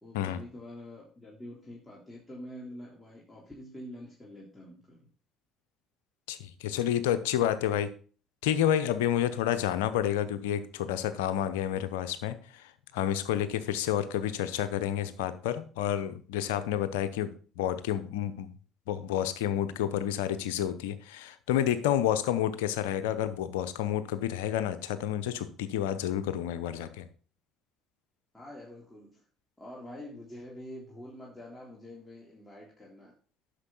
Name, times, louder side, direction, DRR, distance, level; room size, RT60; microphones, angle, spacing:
voice 1, 0.0-5.1 28.3-29.2 29.6-33.1, left 1 dB, 10° left, -5 dB, 3.5 m, -46 dB
voice 2, 6.3-7.9 8.4-18.5 18.9-27.1, left 11 dB, 75° left, 11 dB, 0.8 m, -30 dB
9.8 x 6.8 x 4.0 m, 0.40 s
hypercardioid pair, 55°, 0 cm